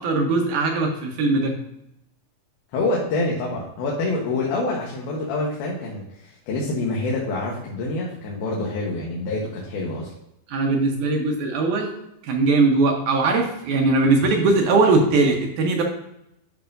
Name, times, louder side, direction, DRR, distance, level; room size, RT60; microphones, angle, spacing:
voice 1, 0.0-1.6 10.5-11.9 12.2-15.8, right 3 dB, 70° right, 1 dB, 2.1 m, -20 dB
voice 2, 2.7-10.1, left 2 dB, 85° left, -3 dB, 3.0 m, -26 dB
11.5 x 5.3 x 2.6 m, 0.82 s
omnidirectional pair, 4.2 m